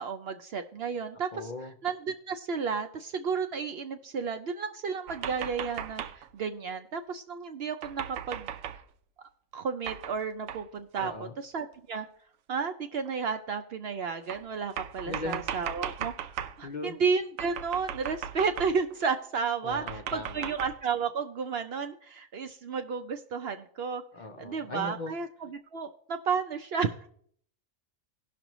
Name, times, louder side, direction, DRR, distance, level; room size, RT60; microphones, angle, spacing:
voice 1, 0.0-1.3 1.8-8.5 9.2-11.1 11.4-12.1 12.5-24.0 24.4-27.1, right 5 dB, 60° right, 8 dB, 0.7 m, -32 dB
voice 2, 1.3-1.7 11.0-11.4 15.0-15.4 16.6-17.0 19.6-20.5 24.1-25.1, left 3 dB, 50° left, 4 dB, 0.6 m, -38 dB
sound 1, 5.1-6.3 7.8-8.8 9.9-10.2 10.5-10.6 11.0-11.1 11.9-12.0 13.1-13.2 14.3-16.6 17.4-18.9 19.7-20.8, right 9 dB, 80° right, 1.0 m, -38 dB
17.5 x 6.0 x 3.0 m, 0.62 s
omnidirectional pair, 1.3 m